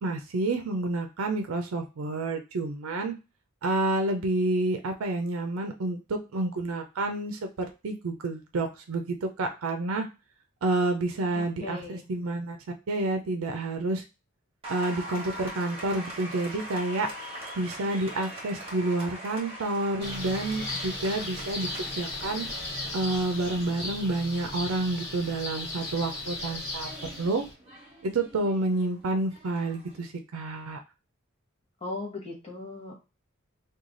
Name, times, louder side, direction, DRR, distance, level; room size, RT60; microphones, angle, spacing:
voice 1, 0.0-3.2 3.6-7.5 7.8-10.1 10.6-12.6 12.9-14.0 14.7-17.1 17.6-22.5 22.9-27.4 28.0-30.8, right 2 dB, 85° right, 5 dB, 0.5 m, -29 dB
voice 2, 11.3-12.0 31.8-32.9, left 2 dB, 30° left, -1 dB, 1.0 m, -38 dB
Applause, 14.6-30.0, right 1 dB, 25° right, 1.1 m, -43 dB
sound 1, 20.0-27.5, left 2 dB, 50° left, 1.3 m, -36 dB
3.1 x 2.3 x 3.8 m, 0.29 s
head